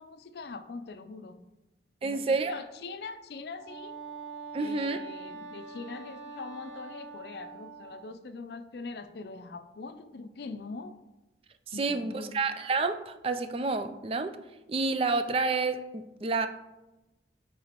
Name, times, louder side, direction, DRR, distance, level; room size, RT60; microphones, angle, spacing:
voice 1, 0.0-1.4 2.0-4.0 4.6-11.0 11.7-12.4, left 4 dB, 70° left, 11 dB, 0.4 m, -42 dB
voice 2, 2.0-2.5 4.5-5.0 11.8-14.3 14.7-16.5, right 3 dB, 30° right, 9 dB, 0.4 m, -29 dB
Wind instrument woodwind instrument, 3.5-8.2, right 4 dB, 90° right, 0.8 m, -44 dB
8.1 x 4.8 x 2.9 m, 1.0 s
head